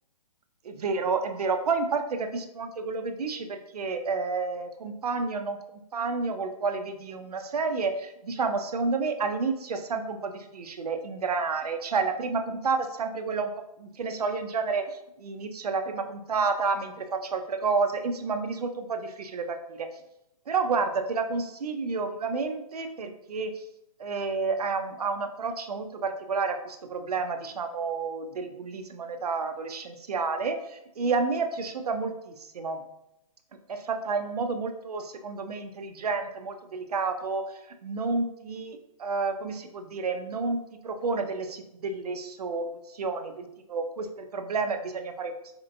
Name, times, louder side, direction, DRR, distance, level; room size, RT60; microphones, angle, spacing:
voice 1, 0.6-13.5 13.8-19.9 20.5-23.6 24.0-32.8 33.7-40.6 40.8-45.3, right 4 dB, 90° right, 7 dB, 0.6 m, -30 dB
4.2 x 2.9 x 2.5 m, 0.84 s
hypercardioid pair, 165°, 19 cm